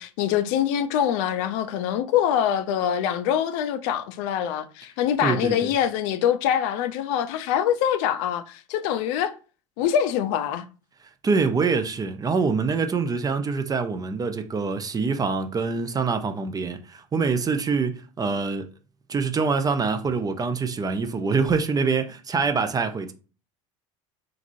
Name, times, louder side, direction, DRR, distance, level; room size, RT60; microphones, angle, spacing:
voice 1, 0.0-9.3 9.8-10.6, left 9 dB, 65° left, 0.4 m, -24 dB
voice 2, 5.2-5.7 11.2-18.7 19.1-23.1, right 4 dB, 20° right, 0.5 m, -25 dB
2.9 x 2.5 x 2.6 m
hypercardioid pair, 85°, 17 cm